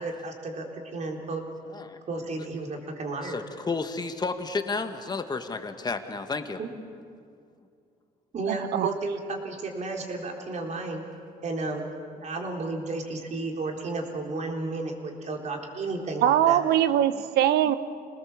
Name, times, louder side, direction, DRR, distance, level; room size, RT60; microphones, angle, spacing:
voice 1, 0.0-1.5 2.1-3.4 6.6-6.7 8.3-11.0 11.4-16.6, right 3 dB, 45° right, 1 dB, 3.8 m, -33 dB
voice 2, 3.2-6.6 16.8-16.9 17.1-17.2, left 4 dB, 25° left, 7 dB, 1.7 m, -32 dB
voice 3, 8.5-8.9 16.2-17.8, right 11 dB, 75° right, 13 dB, 0.9 m, -22 dB
28.0 x 19.5 x 7.3 m, 2.3 s
cardioid pair, 110°, 17 cm